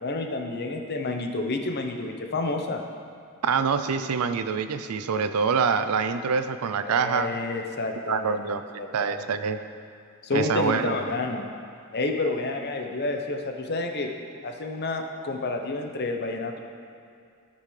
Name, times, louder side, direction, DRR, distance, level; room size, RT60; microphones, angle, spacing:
voice 1, 0.0-2.8 6.8-8.5 8.8-9.2 10.2-11.5 11.9-14.1 14.4-16.6, left 2 dB, 50° left, 3 dB, 0.8 m, -29 dB
voice 2, 3.4-7.3 8.1-8.6 8.9-9.6 10.3-11.0, right 5 dB, 75° right, 10 dB, 0.5 m, -25 dB
15.5 x 5.4 x 3.3 m, 2.4 s
head